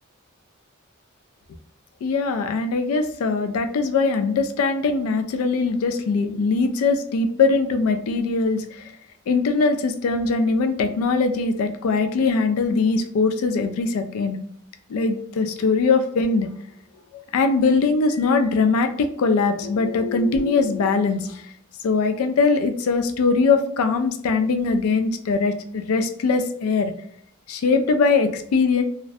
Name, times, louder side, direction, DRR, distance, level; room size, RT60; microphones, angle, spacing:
voice 1, 2.0-8.9 9.3-14.4 14.9-16.5 17.1-21.5 21.8-26.9 27.5-28.8, left 4 dB, 85° left, 7 dB, 0.3 m, -21 dB
2.5 x 2.0 x 2.5 m, 0.66 s
head